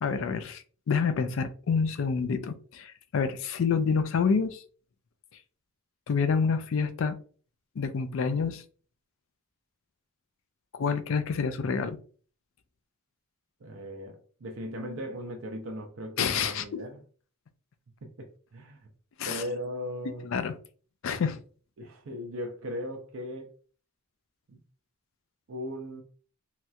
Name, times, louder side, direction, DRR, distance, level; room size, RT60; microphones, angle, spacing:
voice 1, 0.0-4.6 6.1-7.2 7.8-8.6 10.7-12.0 16.2-16.6 19.2-19.4 20.2-20.6 21.0-21.4, left 5 dB, 60° left, 0.4 m, -28 dB
voice 2, 13.6-17.0 18.0-18.9 19.2-20.3 21.8-23.5 24.5-24.6 25.5-26.0, equal, 60° right, 0.5 m, -38 dB
3.1 x 2.8 x 2.3 m
head